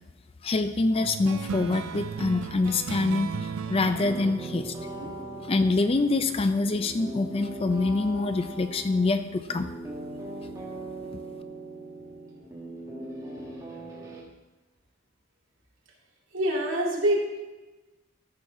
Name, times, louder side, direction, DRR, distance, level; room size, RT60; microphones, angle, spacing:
voice 1, 0.4-4.7 5.5-9.7, left 3 dB, 30° left, 9 dB, 0.4 m, -25 dB
sound 1, 1.0-6.0, right 5 dB, 85° right, 0.5 m, -36 dB
sound 2, 4.0-14.2, right 1 dB, 15° right, 1.6 m, -40 dB
voice 2, 16.3-17.2, right 1 dB, 65° right, -3 dB, 2.5 m, -25 dB
13.0 x 6.3 x 3.6 m, 1.1 s
head